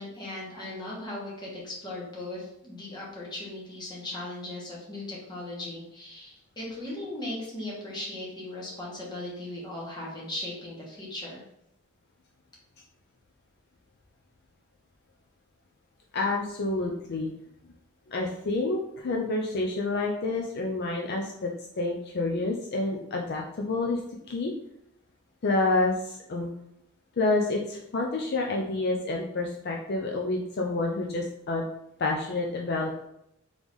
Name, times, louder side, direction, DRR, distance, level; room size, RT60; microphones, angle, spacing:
voice 1, 0.0-11.4, left 1 dB, 20° left, -5 dB, 1.4 m, -38 dB
voice 2, 16.1-17.3 18.1-24.0 24.3-24.5 25.4-26.5 27.2-31.6 32.0-33.1, left 2 dB, 55° left, 0 dB, 0.5 m, -28 dB
3.9 x 3.6 x 3.1 m, 0.78 s
head